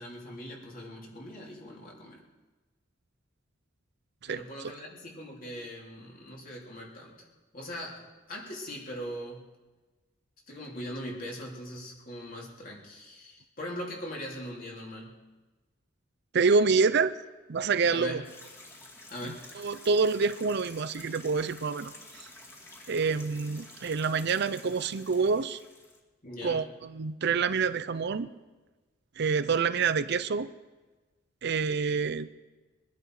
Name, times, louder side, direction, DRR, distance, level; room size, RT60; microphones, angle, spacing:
voice 1, 0.0-2.2 4.3-7.3 7.5-9.5 10.5-15.2 17.9-18.2 19.1-19.5 22.6-22.7 26.2-26.6, equal, 45° left, -2 dB, 3.4 m, -41 dB
voice 2, 16.3-17.2 17.5-18.2 19.3-21.9 22.2-22.3 22.9-25.6 26.4-28.3 29.2-30.5 31.4-32.3, right 5 dB, 55° right, 14 dB, 0.5 m, -27 dB
sound 1, 18.2-26.0, left 2 dB, 15° left, 2.2 m, -50 dB
23.0 x 11.0 x 4.9 m, 1.2 s
head